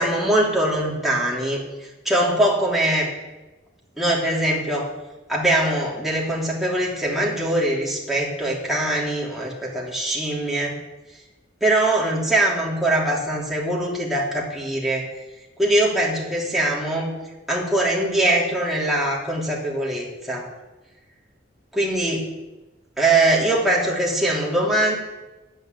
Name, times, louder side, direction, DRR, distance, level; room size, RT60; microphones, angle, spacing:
voice 1, 0.0-1.6 2.0-3.1 4.0-4.9 5.3-10.8 11.6-15.1 15.6-17.1 17.5-20.5 21.7-22.3 23.0-24.9, right 1 dB, ahead, -4 dB, 3.0 m, -22 dB
10.5 x 8.9 x 9.2 m, 1.1 s
head